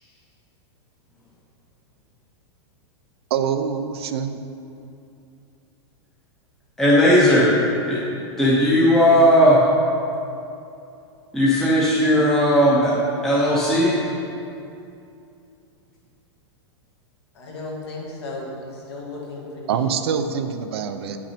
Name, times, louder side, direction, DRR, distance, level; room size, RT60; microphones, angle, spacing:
voice 1, 3.3-4.4 19.7-21.2, right 7 dB, 60° right, 8 dB, 0.5 m, -25 dB
voice 2, 6.8-7.5 7.8-8.0 8.4-9.6 11.3-12.9 13.2-13.9, equal, 5° left, -7 dB, 0.8 m, -16 dB
voice 3, 17.3-20.1, left 2 dB, 60° left, -3 dB, 2.0 m, -35 dB
9.5 x 6.0 x 4.3 m, 2.6 s
supercardioid pair, 175°, 15 cm